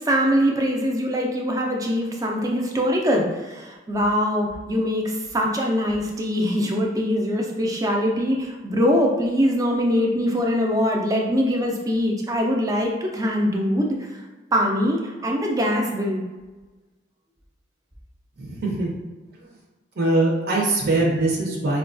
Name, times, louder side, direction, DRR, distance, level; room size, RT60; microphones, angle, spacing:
voice 1, 0.1-14.1 14.5-16.2, equal, 20° right, 0 dB, 0.4 m, -23 dB
voice 2, 18.4-18.9 20.0-21.8, right 2 dB, 55° right, -2 dB, 0.6 m, -22 dB
4.3 x 2.3 x 2.5 m, 1.2 s
head